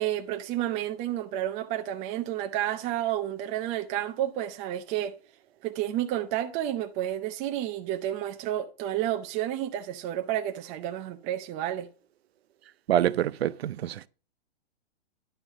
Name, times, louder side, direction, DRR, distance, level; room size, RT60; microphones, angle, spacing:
voice 1, 0.0-5.2 5.6-11.9, right 12 dB, 25° right, 0.5 m, -30 dB
voice 2, 12.9-14.1, right 11 dB, 80° right, 0.6 m, -26 dB
10.5 x 5.4 x 3.6 m
hypercardioid pair, 140°, 31 cm